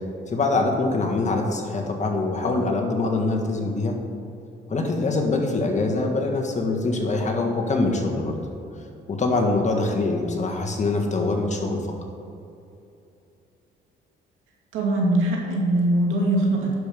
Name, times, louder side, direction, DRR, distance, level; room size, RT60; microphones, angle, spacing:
voice 1, 0.3-3.9 4.7-8.4 9.1-11.8, left 3 dB, 35° left, 2 dB, 1.7 m, -24 dB
voice 2, 14.7-16.7, right 1 dB, 90° right, -1 dB, 2.2 m, -21 dB
11.0 x 5.3 x 7.0 m, 2.7 s
cardioid pair, 90°, 20 cm